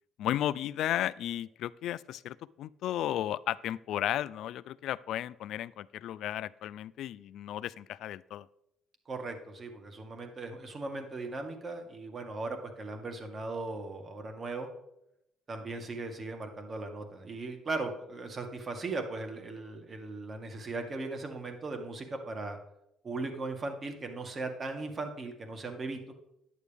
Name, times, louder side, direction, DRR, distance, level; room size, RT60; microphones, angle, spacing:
voice 1, 0.2-8.5, left 12 dB, 70° left, 19 dB, 0.4 m, -34 dB
voice 2, 9.1-14.7 15.5-22.6 23.0-26.1, right 3 dB, 40° right, 5 dB, 1.9 m, -38 dB
11.0 x 9.4 x 3.5 m, 0.82 s
cardioid pair, 90°, 0 cm